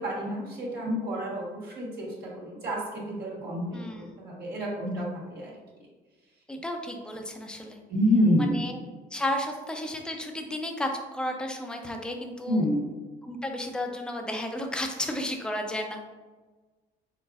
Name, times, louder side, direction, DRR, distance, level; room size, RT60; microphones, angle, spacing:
voice 1, 0.0-5.5 7.9-8.6 12.5-12.8, equal, 65° right, -4 dB, 1.3 m, -28 dB
voice 2, 3.7-4.1 6.5-7.8 8.4-8.8 9.1-12.7 13.2-16.0, left 1 dB, 5° left, 3 dB, 0.5 m, -33 dB
4.0 x 3.8 x 2.4 m, 1.3 s
cardioid pair, 110°, 17 cm